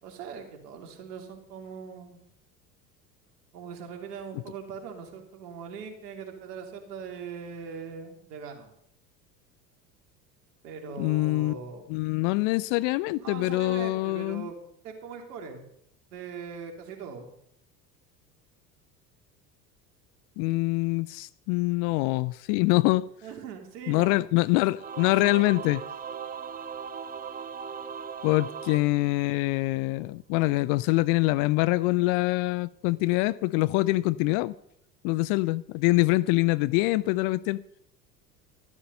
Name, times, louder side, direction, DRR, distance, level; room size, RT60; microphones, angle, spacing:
voice 1, 0.0-2.2 3.5-8.7 10.6-11.8 13.2-14.6 14.8-15.6 16.1-17.3 23.2-24.2, right 6 dB, 65° right, 2.9 m, -41 dB
voice 2, 11.0-11.6 11.9-14.5 20.4-23.1 23.9-25.8 28.2-34.6 35.0-37.6, left 20 dB, 45° left, 0.4 m, -25 dB
Singing / Musical instrument, 24.8-29.6, right 6 dB, 20° right, 0.7 m, -39 dB
13.0 x 11.5 x 5.4 m
figure-of-eight pair, 70°, 50 cm